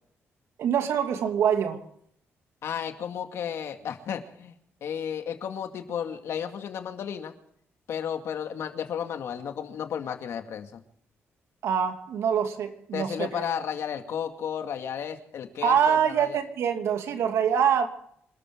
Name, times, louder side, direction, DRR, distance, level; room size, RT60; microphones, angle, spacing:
voice 1, 0.6-1.8 11.6-13.4 15.6-17.9, right 8 dB, 80° right, 6 dB, 2.5 m, -25 dB
voice 2, 2.6-4.5 4.8-7.3 7.9-10.8 12.9-16.4, left 8 dB, 70° left, 6 dB, 2.2 m, -33 dB
26.5 x 13.5 x 3.8 m, 0.67 s
cardioid pair, 135°, 5 cm